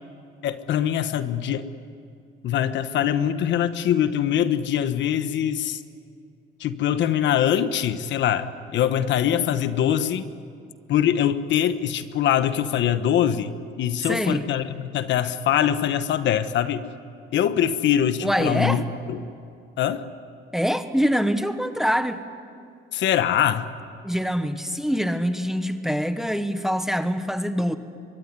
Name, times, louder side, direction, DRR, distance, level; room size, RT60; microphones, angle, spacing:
voice 1, 0.4-1.7 2.4-5.8 6.6-10.2 10.9-16.9 17.3-19.3 19.8-20.1 22.9-23.7, left 10 dB, 60° left, 11 dB, 1.2 m, -23 dB
voice 2, 14.1-14.5 18.2-18.8 20.5-22.2 24.0-27.8, equal, ahead, 9 dB, 1.1 m, -24 dB
23.5 x 23.0 x 9.7 m, 2.4 s
cardioid pair, 135°, 21 cm